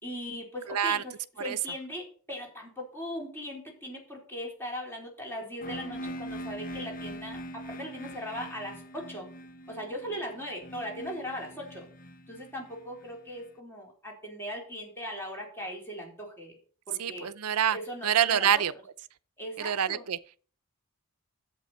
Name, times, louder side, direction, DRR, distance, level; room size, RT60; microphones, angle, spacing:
voice 1, 0.0-9.3 9.7-11.9 12.3-16.6 16.9-17.3 17.7-18.5 19.4-20.1, equal, 10° left, 4.0 m, -39 dB
voice 2, 0.7-1.0 1.4-1.6 17.0-17.8 18.0-18.7 19.6-20.2, right 9 dB, 85° right, 0.6 m, -26 dB
sound 1, 5.6-13.4, equal, 40° left, 0.9 m, -42 dB
11.0 x 8.2 x 4.4 m
head